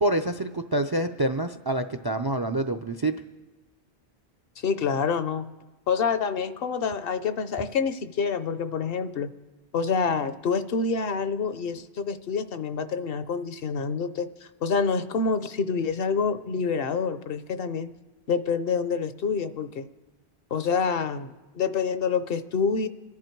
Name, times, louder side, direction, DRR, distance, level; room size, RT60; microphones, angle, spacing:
voice 1, 0.0-3.2, right 1 dB, 35° right, 9 dB, 0.4 m, -26 dB
voice 2, 4.6-5.5 5.9-9.3 9.7-17.9 18.3-19.9 20.5-22.9, left 5 dB, 65° left, 12 dB, 0.9 m, -27 dB
26.0 x 11.0 x 4.6 m, 1.2 s
omnidirectional pair, 1.1 m